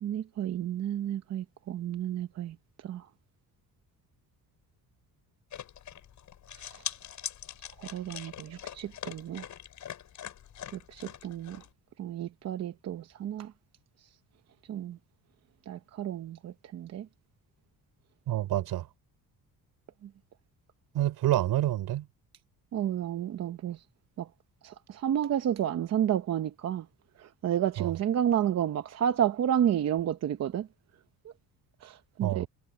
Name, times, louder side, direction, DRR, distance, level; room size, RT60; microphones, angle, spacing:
voice 1, 0.0-2.6 2.8-3.1 6.6-6.7 7.8-9.5 10.7-11.6 12.0-13.5 14.7-15.0 15.7-17.1 22.7-23.8 24.2-24.3 24.6-26.9 27.2-30.7 31.8-32.5, right 10 dB, 45° right, 0.8 m, -31 dB
sound 1, 5.5-11.7, left 10 dB, 50° left, 6.9 m, -43 dB
voice 2, 18.3-18.9 20.9-22.0 27.8-27.9 32.2-32.5, right 13 dB, 75° right, 4.3 m, -27 dB
cardioid pair, 170°, 37 cm